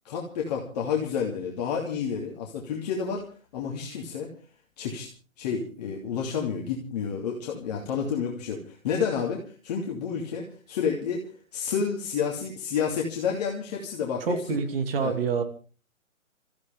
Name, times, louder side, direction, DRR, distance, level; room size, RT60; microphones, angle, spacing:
voice 1, 0.0-3.2 3.5-4.3 4.8-5.1 5.4-11.2 11.5-14.6 15.0-15.1, left 6 dB, 30° left, -1 dB, 2.8 m, -30 dB
voice 2, 14.2-15.4, right 5 dB, 45° right, 7 dB, 2.7 m, -27 dB
26.0 x 15.0 x 3.6 m, 0.37 s
figure-of-eight pair, 145°, 40 cm